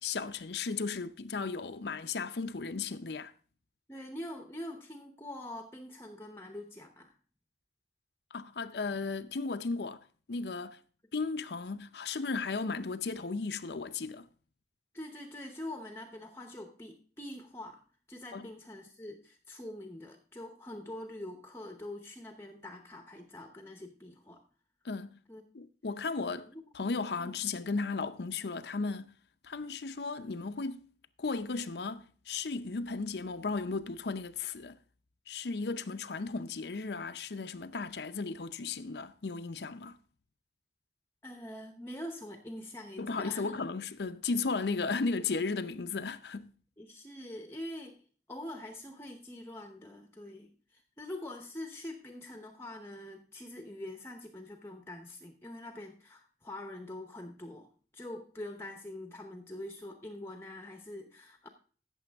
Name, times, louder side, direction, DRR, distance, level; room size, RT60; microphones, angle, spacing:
voice 1, 0.0-3.3 8.3-10.0 10.3-10.8 11.1-14.3 18.3-18.5 24.8-25.2 25.5-26.5 26.7-29.1 29.4-30.9 31.2-34.8 35.3-40.0 43.0-46.5, left 4 dB, 65° left, 0.6 m, -35 dB
voice 2, 3.9-7.1 14.9-17.8 18.1-24.4 25.3-25.4 26.5-26.6 27.2-27.3 41.2-43.6 46.8-48.0 48.3-61.5, left 1 dB, 15° left, 0.8 m, -44 dB
15.0 x 7.0 x 3.5 m
head